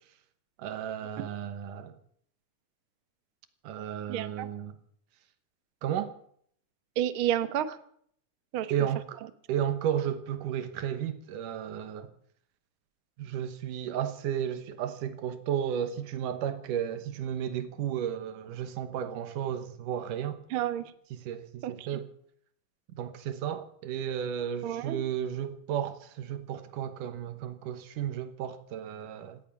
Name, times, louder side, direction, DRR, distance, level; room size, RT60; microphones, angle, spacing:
voice 1, 0.6-2.0 3.6-4.8 5.8-6.1 8.7-9.2 9.5-12.1 13.2-20.4 21.1-22.1 22.9-29.4, right 9 dB, 85° right, 2.7 m, -33 dB
voice 2, 4.1-4.5 7.0-7.8 8.5-8.7 20.5-20.9 21.6-22.0 24.6-25.0, right 11 dB, 60° right, 1.5 m, -30 dB
17.5 x 13.5 x 5.8 m
omnidirectional pair, 3.7 m